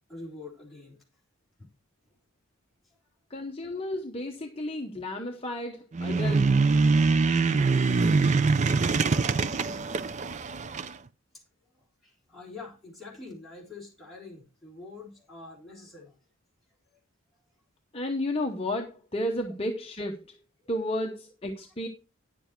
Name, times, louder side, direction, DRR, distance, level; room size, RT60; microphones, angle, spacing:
voice 1, 0.1-1.0 1.6-1.7 2.1-2.2 2.8-2.9 8.8-9.4 11.7-16.2 20.6-20.7, left 3 dB, ahead, 3.8 m, -46 dB
voice 2, 3.3-6.6 17.9-20.4 20.7-21.9, left 1 dB, 25° left, 0.9 m, -32 dB
sound 1, 5.9-10.9, right 4 dB, 30° right, 0.4 m, -24 dB
10.0 x 7.1 x 4.5 m
head